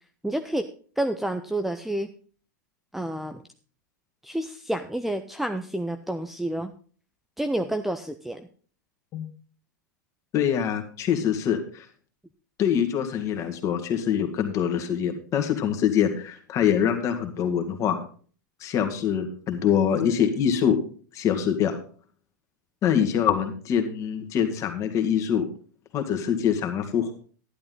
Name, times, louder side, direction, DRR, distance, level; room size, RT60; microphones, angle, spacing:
voice 1, 0.2-0.6 1.0-2.1 2.9-3.4 4.2-6.7 7.4-8.5, right 1 dB, ahead, 7 dB, 0.6 m, -29 dB
voice 2, 10.3-11.9 12.6-18.0 18.6-20.8 21.1-21.8 22.8-25.5 25.9-27.1, left 8 dB, 30° left, 6 dB, 2.0 m, -24 dB
12.0 x 11.0 x 3.9 m, 0.42 s
figure-of-eight pair, 95°, 10 cm